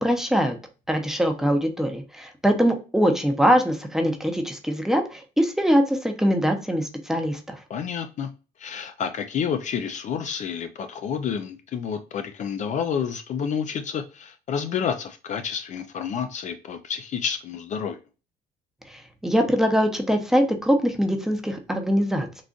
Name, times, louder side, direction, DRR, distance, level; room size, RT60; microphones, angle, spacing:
voice 1, 0.0-0.6 0.9-7.6 18.9-22.3, equal, 5° right, 4 dB, 0.7 m, -22 dB
voice 2, 7.7-8.3 8.6-18.0, left 7 dB, 45° left, 8 dB, 0.4 m, -29 dB
3.8 x 2.4 x 2.3 m, 0.33 s
cardioid pair, 110°, 17 cm